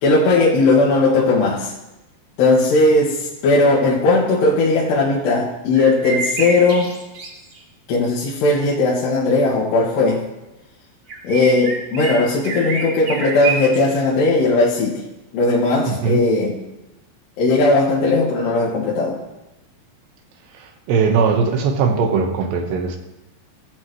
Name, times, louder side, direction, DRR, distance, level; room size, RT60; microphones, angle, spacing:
voice 1, 0.0-1.7 2.4-6.9 7.9-10.2 11.2-15.0 15.3-16.6 17.4-19.2, left 2 dB, 80° left, -6 dB, 4.1 m, -17 dB
sound 1, 5.7-7.6 11.1-14.0, right 4 dB, 40° right, 1.8 m, -28 dB
voice 2, 15.9-16.2 20.5-23.0, right 5 dB, 85° right, 4 dB, 3.7 m, -19 dB
23.5 x 13.5 x 3.3 m, 0.97 s
omnidirectional pair, 4.8 m